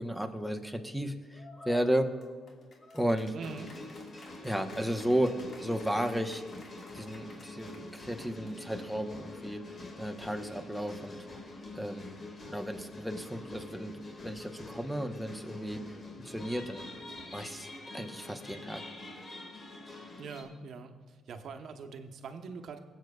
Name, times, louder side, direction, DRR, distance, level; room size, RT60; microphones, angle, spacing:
voice 1, 0.0-2.1 2.9-3.4 4.4-6.4 6.9-9.6 10.0-11.3 11.7-12.1 12.5-14.0 14.2-16.0 16.2-16.9 17.3-18.9, equal, ahead, 7 dB, 0.9 m, -33 dB
sound 1, 1.3-8.8, left 2 dB, 55° left, 1.8 m, -54 dB
voice 2, 3.3-3.7 20.2-20.9 21.3-22.8, right 5 dB, 65° right, 6 dB, 0.9 m, -43 dB
sound 2, 3.4-20.4, left 2 dB, 40° left, 1.6 m, -46 dB
23.0 x 7.9 x 2.3 m, 1.5 s
cardioid pair, 90°, 0 cm